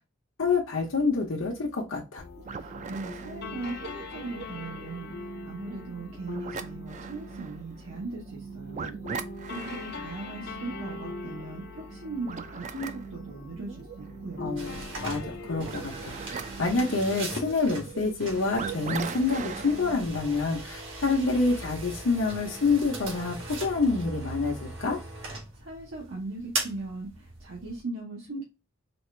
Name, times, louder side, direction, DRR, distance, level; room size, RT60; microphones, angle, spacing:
voice 1, 0.4-2.2 14.4-25.0, left 3 dB, 85° left, 0.8 m, -27 dB
sound 1, 2.2-16.8, left 4 dB, 55° left, 0.5 m, -43 dB
sound 2, 2.4-20.1, right 6 dB, 35° right, 0.3 m, -41 dB
voice 2, 2.5-14.6 25.5-28.4, right 3 dB, 85° right, 1.1 m, -39 dB
sound 3, 14.6-27.8, right 2 dB, 70° right, 1.4 m, -39 dB
4.2 x 2.4 x 3.2 m
head